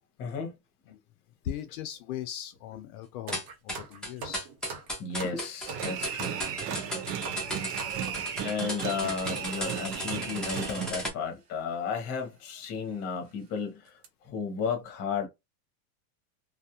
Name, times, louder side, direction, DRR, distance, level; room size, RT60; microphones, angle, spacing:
voice 1, 0.2-0.6 5.0-6.4 8.4-15.3, left 5 dB, 30° left, 0.8 m, -33 dB
voice 2, 1.4-4.5 7.4-7.7 8.3-8.4, left 10 dB, 70° left, 0.5 m, -39 dB
sound 1, 3.3-11.1, equal, ahead, 0.5 m, -36 dB
sound 2, 3.3-8.3 9.1-9.3 10.0-10.1 10.2-10.4 11.4-11.6 12.1-12.2 12.7-12.8 13.2-13.5 13.8-14.1, right 4 dB, 50° right, 1.0 m, -43 dB
sound 3, 5.7-10.9, right 8 dB, 85° right, 0.8 m, -35 dB
2.4 x 2.0 x 2.8 m
supercardioid pair, 150°, 46 cm